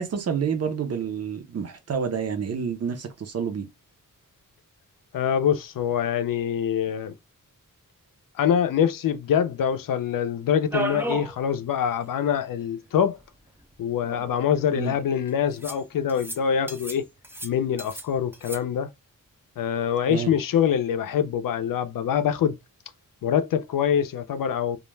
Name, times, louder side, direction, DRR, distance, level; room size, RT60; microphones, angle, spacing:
voice 1, 0.0-3.7 14.7-14.9 20.0-20.3, right 6 dB, 50° right, 0.6 m, -29 dB
voice 2, 5.1-7.1 8.4-13.2 13.8-17.0 17.4-18.9 19.6-22.6 23.2-24.8, left 8 dB, 80° left, 0.5 m, -24 dB
sound 1, 10.7-11.3 11.7-11.8 12.0-12.1 13.2-13.3 14.0-14.7 15.6-15.8 16.1-16.4 16.7-17.0 17.2-18.1 18.3-18.6, right 2 dB, 5° right, 0.4 m, -33 dB
2.4 x 2.1 x 3.1 m
wide cardioid pair, 170°, 33 cm